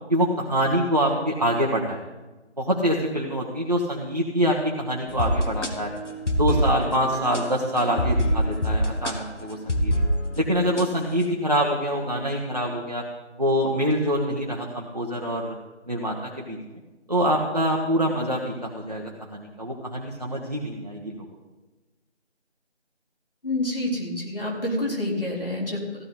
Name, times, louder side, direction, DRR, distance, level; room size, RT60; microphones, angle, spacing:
voice 1, 0.1-2.0 2.6-5.9 6.3-9.9 10.4-13.0 13.4-15.5 15.9-16.6 17.1-21.3, equal, 35° right, -3 dB, 1.2 m, -25 dB
sound 1, 5.1-10.9, equal, 80° left, 1.8 m, -25 dB
voice 2, 23.4-26.1, left 1 dB, 50° left, -2 dB, 4.0 m, -28 dB
15.5 x 12.5 x 4.1 m, 1.2 s
figure-of-eight pair, 175°, 35 cm